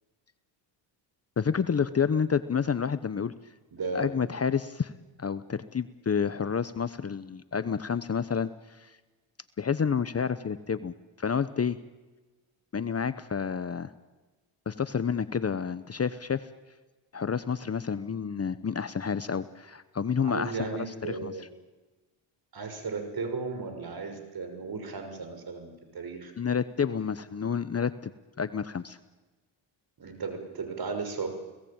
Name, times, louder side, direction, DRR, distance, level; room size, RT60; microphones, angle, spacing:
voice 1, 1.4-3.3 3.9-4.9 5.2-8.9 9.6-11.8 12.7-13.9 14.7-16.5 17.1-20.7 21.1-21.3 26.4-28.1 28.4-29.0, left 6 dB, 30° left, 13 dB, 1.0 m, -29 dB
voice 2, 3.7-4.2 20.2-21.4 22.5-26.3 30.0-31.3, right 4 dB, 45° right, 7 dB, 6.2 m, -35 dB
30.0 x 18.0 x 8.9 m, 1.2 s
cardioid pair, 75°, 49 cm